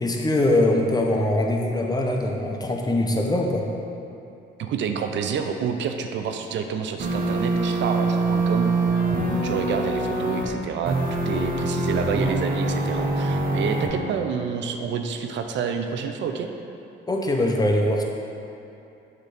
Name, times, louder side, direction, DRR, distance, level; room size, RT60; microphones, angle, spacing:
voice 1, 0.0-3.7 17.1-18.0, left 1 dB, 20° left, 1 dB, 0.7 m, -22 dB
voice 2, 4.6-8.8 9.4-11.0 11.3-16.5, right 6 dB, 70° right, 6 dB, 0.5 m, -28 dB
sound 1, 7.0-10.5 10.8-13.9, right 2 dB, 45° right, 0.9 m, -24 dB
6.6 x 3.1 x 4.9 m, 2.7 s
cardioid pair, 90°, 20 cm